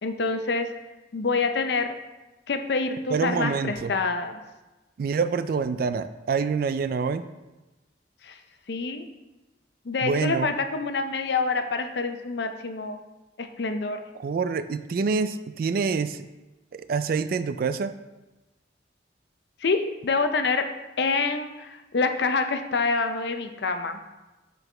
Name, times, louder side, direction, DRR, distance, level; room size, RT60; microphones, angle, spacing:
voice 1, 0.0-0.7 1.1-1.9 2.5-4.4 8.2-8.4 8.7-9.1 9.9-13.0 13.4-14.0 19.6-20.6 21.0-24.0, left 4 dB, 60° left, 7 dB, 0.5 m, -26 dB
voice 2, 3.1-3.9 5.0-7.2 10.0-10.5 14.2-16.3 16.7-17.9, right 5 dB, 50° right, 12 dB, 0.3 m, -26 dB
7.8 x 4.7 x 3.3 m, 1.1 s
head